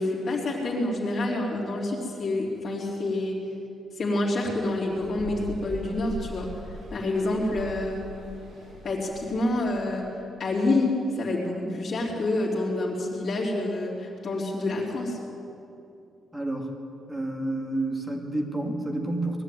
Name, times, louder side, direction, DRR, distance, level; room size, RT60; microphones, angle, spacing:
voice 1, 0.0-3.4 4.0-6.5 6.9-8.0 8.8-10.1 10.4-15.2, left 2 dB, 40° left, -4 dB, 3.5 m, -27 dB
sound 1, 4.5-9.6, right 2 dB, 70° right, 6.4 m, -41 dB
voice 2, 16.3-16.7 17.1-19.4, right 2 dB, 5° right, 2 dB, 2.2 m, -29 dB
20.5 x 14.0 x 9.4 m, 2.7 s
cardioid pair, 165°, 0 cm